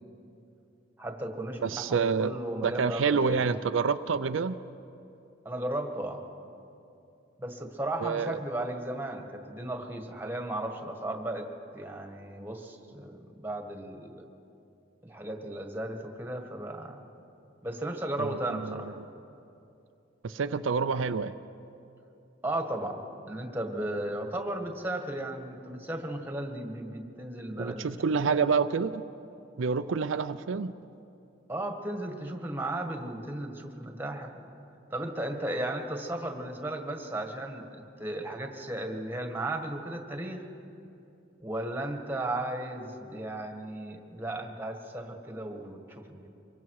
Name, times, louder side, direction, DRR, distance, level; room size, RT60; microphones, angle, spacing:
voice 1, 1.0-3.5 5.4-6.2 7.4-11.5 11.7-14.3 15.0-17.0 17.6-19.0 22.4-23.0 23.3-27.9 28.3-28.4 31.5-34.5 34.9-37.7 38.0-40.4 41.4-46.3, right 1 dB, 10° right, 4 dB, 1.6 m, -35 dB
voice 2, 1.6-4.6 8.0-8.4 18.2-19.1 20.2-21.3 27.6-29.0 29.6-30.7, right 5 dB, 75° right, 10 dB, 0.5 m, -28 dB
25.0 x 22.5 x 4.8 m, 2.7 s
head